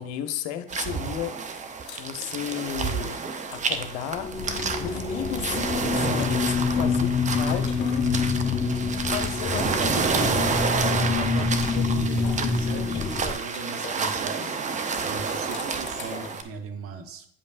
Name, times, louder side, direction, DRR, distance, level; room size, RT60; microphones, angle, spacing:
voice 1, 0.0-1.3 2.0-3.2 3.5-4.3 4.8-8.1 9.1-10.5, left 10 dB, 60° left, 9 dB, 0.8 m, -33 dB
sound 1, 0.7-16.4, right 5 dB, 25° right, 0.7 m, -30 dB
sound 2, 1.4-5.1 5.5-9.6 10.1-14.1 15.1-16.5, left 5 dB, 40° left, 2.3 m, -45 dB
sound 3, 4.1-13.3, left 4 dB, 20° left, 0.9 m, -26 dB
voice 2, 9.2-14.6 15.0-17.3, right 5 dB, 45° right, 6 dB, 1.1 m, -38 dB
8.6 x 5.3 x 2.5 m, 0.66 s
hypercardioid pair, 75°, 32 cm